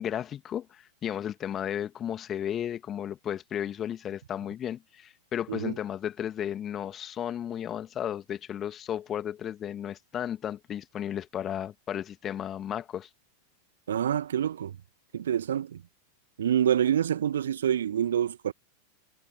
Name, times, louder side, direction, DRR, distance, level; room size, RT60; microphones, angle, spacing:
voice 1, 0.0-13.1, left 10 dB, 25° left, 2.1 m, -34 dB
voice 2, 13.9-14.8 15.1-15.8 16.4-18.5, right 9 dB, 65° right, 1.4 m, -26 dB
figure-of-eight pair, 90°, 0 cm